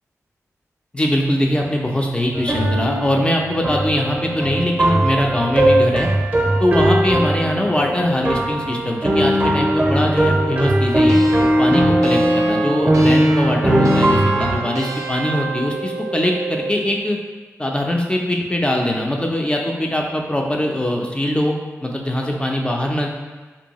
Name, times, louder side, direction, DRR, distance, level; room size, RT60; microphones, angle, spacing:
voice 1, 0.9-6.1 6.6-11.2 11.6-17.2 17.6-23.1, left 1 dB, 20° left, 0 dB, 0.4 m, -21 dB
sound 1, 2.3-14.6, right 1 dB, 30° right, 0.6 m, -18 dB
sound 2, 11.1-16.8, right 4 dB, 80° right, 0.3 m, -28 dB
2.6 x 2.2 x 2.9 m, 1.3 s
cardioid pair, 50°, 6 cm